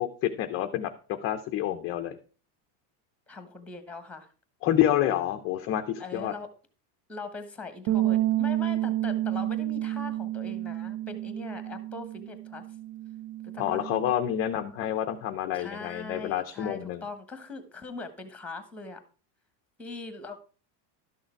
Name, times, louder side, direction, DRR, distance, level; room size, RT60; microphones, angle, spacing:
voice 1, 0.0-2.2 4.6-6.3 13.6-17.0, left 11 dB, 30° left, 7 dB, 0.5 m, -28 dB
voice 2, 3.3-4.3 6.0-6.5 7.1-12.6 13.5-13.8 15.5-19.0 19.8-20.4, left 3 dB, 5° left, 9 dB, 1.2 m, -41 dB
sound 1, 7.9-14.1, right 14 dB, 85° right, 1.2 m, -30 dB
12.5 x 6.4 x 4.5 m, 0.37 s
cardioid pair, 160°, 49 cm